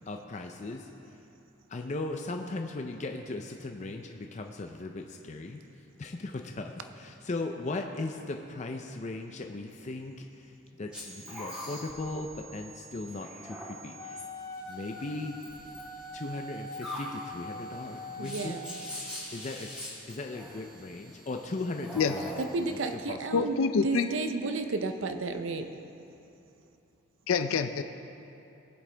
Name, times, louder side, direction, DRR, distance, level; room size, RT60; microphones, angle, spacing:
voice 1, 0.1-0.9 1.7-5.6 6.0-10.5 10.8-14.2 14.7-15.4 16.1-18.6 19.3-19.7 20.1-22.8 23.1-23.5, left 2 dB, 35° left, 3 dB, 0.5 m, -38 dB
sound 1, 10.9-22.9, equal, 5° right, 2.4 m, -44 dB
Wind instrument woodwind instrument, 14.0-19.0, left 1 dB, 15° left, 0.9 m, -43 dB
voice 2, 18.2-18.7 22.4-23.6 23.8-25.7, right 3 dB, 70° right, 7 dB, 0.6 m, -32 dB
voice 3, 23.3-24.1 27.3-27.8, left 5 dB, 90° left, 8 dB, 0.4 m, -26 dB
20.5 x 7.8 x 3.3 m, 2.9 s
head